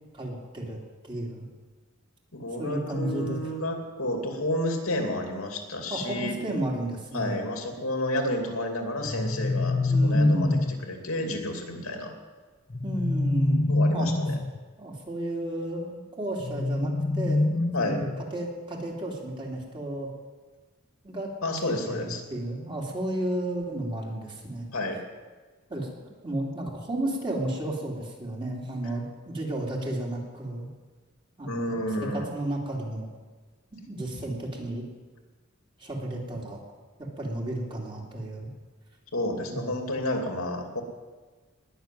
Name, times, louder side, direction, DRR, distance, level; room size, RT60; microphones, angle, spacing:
voice 1, 0.1-0.8 1.0-1.4 2.6-3.5 5.9-7.4 9.9-10.5 12.8-13.7 13.9-14.1 14.8-17.4 17.8-20.1 21.0-21.3 21.8-24.7 25.7-30.7 31.4-33.1 33.8-34.9 35.8-36.6 37.0-38.5 39.5-39.6, right 1 dB, 25° right, -2 dB, 2.9 m, -33 dB
voice 2, 2.3-6.3 7.1-12.1 13.7-14.4 17.7-18.0 21.4-22.2 24.7-25.0 31.4-32.3 34.1-34.2 39.1-40.8, left 1 dB, 90° left, 3 dB, 2.6 m, -30 dB
sound 1, 9.0-10.9 12.7-14.6 16.4-18.3, left 2 dB, 25° left, 0.5 m, -25 dB
20.0 x 6.8 x 9.3 m, 1.3 s
head